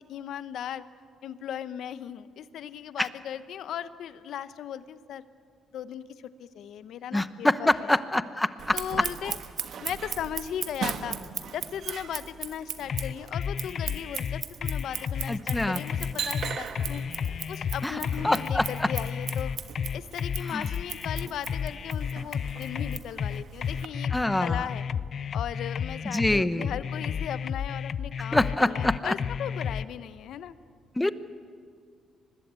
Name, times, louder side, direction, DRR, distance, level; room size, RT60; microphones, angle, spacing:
voice 1, 0.1-0.8 1.2-5.2 5.7-8.0 8.7-9.4 9.8-11.2 11.5-17.0 17.5-19.5 19.9-24.8 25.3-30.5, left 10 dB, 75° left, 14 dB, 0.9 m, -37 dB
voice 2, 7.1-8.8 15.3-15.8 17.8-18.0 18.2-18.9 20.5-20.7 24.1-24.7 26.0-26.7 28.3-29.1 30.9-31.1, left 1 dB, 10° left, 13 dB, 0.9 m, -25 dB
Scissors, 8.6-23.9, right 7 dB, 65° right, 1.4 m, -38 dB
sound 1, 12.9-29.9, left 7 dB, 55° left, 0.5 m, -32 dB
24.5 x 20.0 x 8.3 m, 2.2 s
cardioid pair, 90°, 0 cm